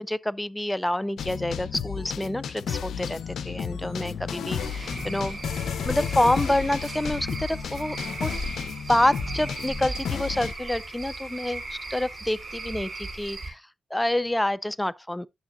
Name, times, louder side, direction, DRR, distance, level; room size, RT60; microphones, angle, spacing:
voice 1, 0.0-5.4 5.8-8.3 8.9-13.6 13.9-15.3, left 1 dB, 10° left, 0.4 m, -27 dB
sound 1, 1.2-10.5, left 7 dB, 85° left, 0.5 m, -33 dB
sound 2, 1.7-10.1 10.7-10.8, left 5 dB, 65° left, 1.1 m, -45 dB
Cricket / Frog, 4.6-13.5, right 2 dB, 45° right, 3.5 m, -37 dB
10.5 x 6.6 x 2.5 m
cardioid pair, 60°, 0 cm